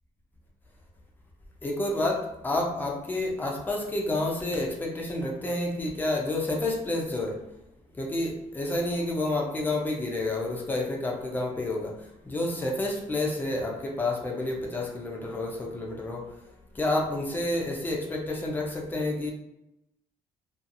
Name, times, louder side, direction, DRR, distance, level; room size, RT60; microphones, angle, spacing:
voice 1, 1.6-7.4 7.9-12.0 12.3-16.3 16.7-19.3, left 2 dB, 15° left, -1 dB, 0.4 m, -29 dB
2.7 x 2.3 x 2.5 m, 0.84 s
cardioid pair, 160°, 13 cm